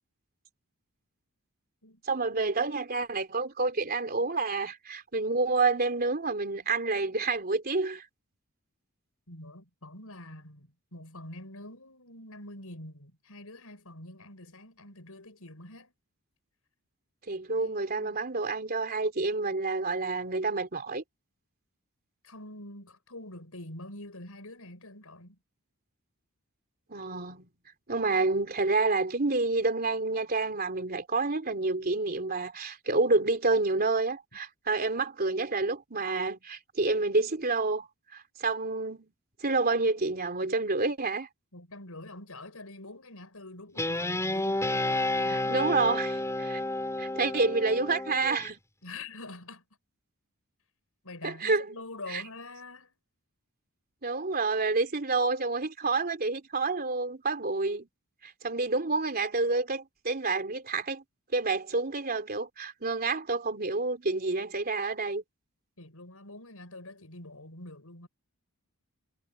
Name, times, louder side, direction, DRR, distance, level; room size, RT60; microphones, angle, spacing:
voice 1, 2.0-8.0 17.3-21.0 26.9-27.5 27.9-37.9 38.1-39.1 39.4-41.3 45.3-46.6 47.0-48.6 51.2-51.6 52.1-52.2 54.0-57.9 58.2-61.0 61.3-65.2, right 3 dB, 45° right, 3.3 m, -28 dB
voice 2, 9.3-15.9 17.5-18.2 22.2-25.4 41.5-45.6 48.8-49.6 51.0-52.9 65.8-68.1, left 2 dB, 70° left, 6.7 m, -45 dB
Guitar, 43.8-48.5, left 2 dB, 15° left, 5.0 m, -31 dB
head